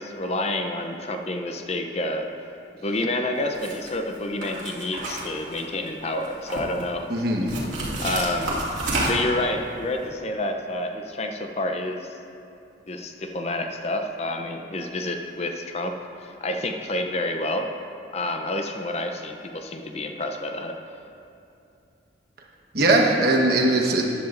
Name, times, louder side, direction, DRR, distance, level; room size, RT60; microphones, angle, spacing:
voice 1, 0.0-2.3 2.8-7.1 8.0-8.6 9.1-12.1 12.9-17.7 18.1-20.8, left 1 dB, 35° left, 5 dB, 0.5 m, -29 dB
sound 1, 3.5-3.9 4.4-5.9 6.2-6.8 7.5-9.4, right 2 dB, 75° right, 2.3 m, -29 dB
voice 2, 7.1-7.5 22.7-24.0, right 2 dB, 50° right, -1 dB, 1.2 m, -20 dB
14.0 x 10.5 x 2.5 m, 2.7 s
head